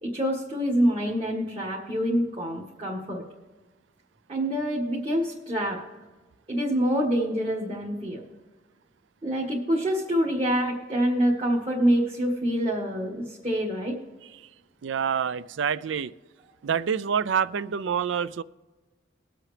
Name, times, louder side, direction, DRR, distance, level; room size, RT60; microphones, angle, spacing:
voice 1, 0.0-3.2 4.3-5.8 6.5-8.2 9.2-14.0, equal, 30° right, -4 dB, 1.6 m, -26 dB
voice 2, 14.8-16.1 16.6-18.4, right 7 dB, 65° right, 18 dB, 0.4 m, -27 dB
21.0 x 7.7 x 3.3 m, 1.2 s
head